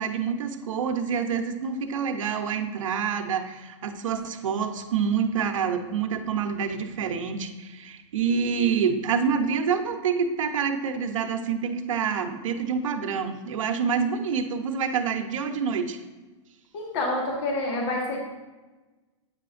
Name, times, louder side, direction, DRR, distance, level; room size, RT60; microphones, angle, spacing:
voice 1, 0.0-16.0, right 6 dB, 85° right, 7 dB, 0.8 m, -27 dB
voice 2, 16.7-18.2, left 2 dB, 60° left, 0 dB, 1.5 m, -28 dB
8.5 x 5.7 x 2.5 m, 1.2 s
hypercardioid pair, 145°, 16 cm